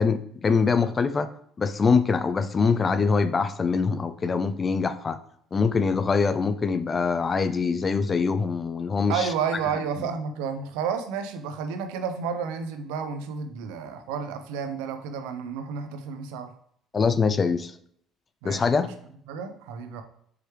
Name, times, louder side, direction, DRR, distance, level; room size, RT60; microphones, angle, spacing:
voice 1, 0.0-5.2 5.5-9.3 16.9-17.7 18.4-18.9, left 5 dB, 35° left, 11 dB, 0.4 m, -24 dB
voice 2, 9.1-16.5 18.4-18.7 19.3-20.0, right 6 dB, 85° right, 8 dB, 0.5 m, -31 dB
4.7 x 3.2 x 3.1 m, 0.66 s
supercardioid pair, 75°, 0 cm